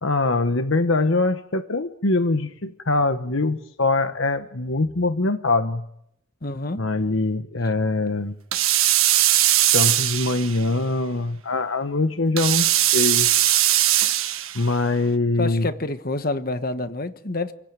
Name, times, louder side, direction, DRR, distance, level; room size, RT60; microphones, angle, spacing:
voice 1, 0.0-5.8 6.8-8.4 9.7-13.3 14.5-15.7, left 2 dB, 65° left, 1.2 m, -23 dB
voice 2, 6.4-6.8 15.4-17.5, left 2 dB, 45° left, 1.3 m, -28 dB
sound 1, 8.5-10.6 12.4-14.7, right 13 dB, 80° right, 1.4 m, -20 dB
28.5 x 16.5 x 9.1 m
head